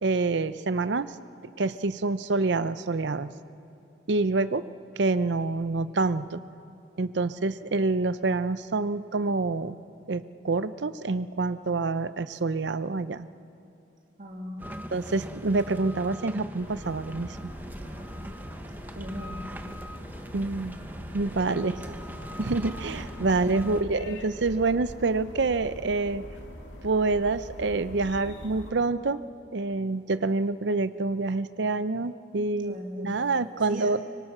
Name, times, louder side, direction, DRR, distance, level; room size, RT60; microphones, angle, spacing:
voice 1, 0.0-1.1 1.6-3.3 4.1-4.6 5.0-6.4 7.0-9.8 10.1-13.3 14.9-17.5 20.3-20.8 21.1-21.7 22.4-26.2 26.8-29.2 29.5-34.0, right 3 dB, 70° right, 13 dB, 0.6 m, -27 dB
voice 2, 14.2-14.8 18.9-19.5 21.5-22.0 23.3-23.7 32.6-34.1, equal, 45° right, 0 dB, 2.5 m, -40 dB
sound 1, 14.6-23.8, equal, 10° right, 0.8 m, -41 dB
sound 2, 16.6-28.7, left 1 dB, 80° left, 2.4 m, -43 dB
24.5 x 23.0 x 6.1 m, 2.6 s
head